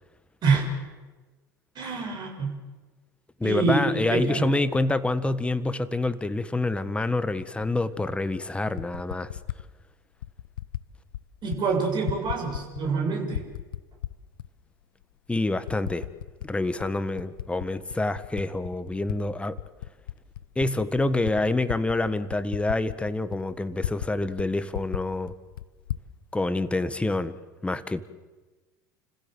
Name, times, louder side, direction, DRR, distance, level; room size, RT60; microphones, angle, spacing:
voice 1, 1.8-2.6 3.4-4.4 11.4-13.4, right 4 dB, 40° right, 2 dB, 7.2 m, -26 dB
voice 2, 3.4-9.3 15.3-16.1 16.4-19.6 20.5-25.3 26.3-28.0, left 2 dB, 10° left, 12 dB, 1.5 m, -27 dB
Typing, 7.6-7.7 8.6-9.6 10.2-10.8 11.1-11.6 11.9-13.0 13.3-14.5 15.0-15.1 15.7-16.5 16.8-19.2 19.5-24.1 24.4-24.5 24.7-26.1, left 13 dB, 75° left, 0.8 m, -35 dB
30.0 x 15.5 x 7.9 m, 1.3 s
hypercardioid pair, 80°, 11 cm